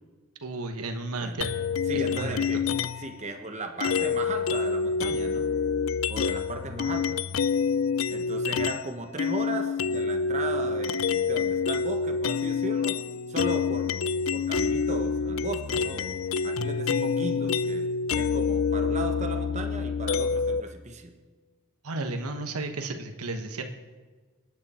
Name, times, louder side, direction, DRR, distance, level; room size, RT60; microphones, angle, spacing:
voice 1, 0.4-1.5 1.9-2.6 21.8-23.6, right 2 dB, 90° right, 5 dB, 1.3 m, -33 dB
sound 1, 1.4-3.1 3.8-8.9 9.2-20.6, left 5 dB, 65° left, 0.4 m, -27 dB
voice 2, 1.9-2.6 3.0-5.5 6.1-7.2 8.1-13.0 13.3-16.2 16.4-17.9 18.1-21.1, right 2 dB, 30° right, 6 dB, 1.0 m, -36 dB
25.5 x 9.7 x 4.4 m, 1.4 s
head